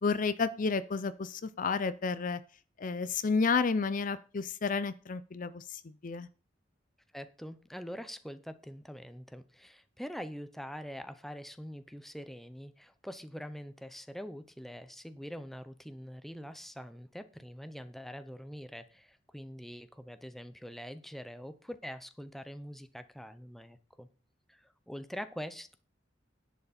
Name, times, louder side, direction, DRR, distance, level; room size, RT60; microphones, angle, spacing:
voice 1, 0.0-2.4 2.8-6.3, left 4 dB, 45° left, 14 dB, 0.5 m, -31 dB
voice 2, 7.1-24.1 24.5-25.7, equal, ahead, 10 dB, 0.7 m, -44 dB
10.5 x 9.2 x 4.3 m, 0.38 s
head